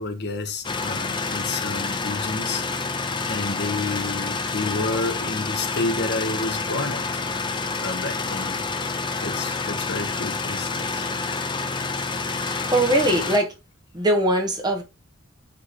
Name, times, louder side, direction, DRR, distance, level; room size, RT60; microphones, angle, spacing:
voice 1, 0.0-2.6 3.3-7.0 7.8-8.7 9.2-11.1, left 3 dB, 55° left, 1.1 m, -30 dB
sound 1, 0.6-13.4, left 4 dB, 25° left, 0.6 m, -28 dB
voice 2, 12.4-13.5 13.9-14.8, right 1 dB, 20° right, 1.3 m, -21 dB
7.7 x 3.1 x 4.1 m
head